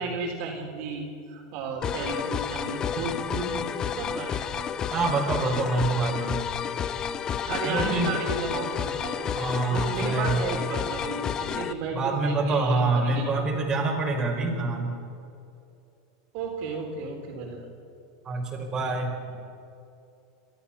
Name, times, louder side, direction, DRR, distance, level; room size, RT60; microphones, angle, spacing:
voice 1, 0.0-3.7 3.9-4.7 7.4-9.3 9.7-13.5 16.3-17.7, right 3 dB, 55° right, 0 dB, 4.2 m, -33 dB
sound 1, 1.8-11.7, left 8 dB, 30° left, 0.9 m, -31 dB
voice 2, 4.9-6.4 7.6-8.1 9.3-10.4 11.9-14.9 18.2-19.1, right 3 dB, 25° right, -1 dB, 4.7 m, -26 dB
27.5 x 13.5 x 7.1 m, 2.6 s
supercardioid pair, 135°, 2 cm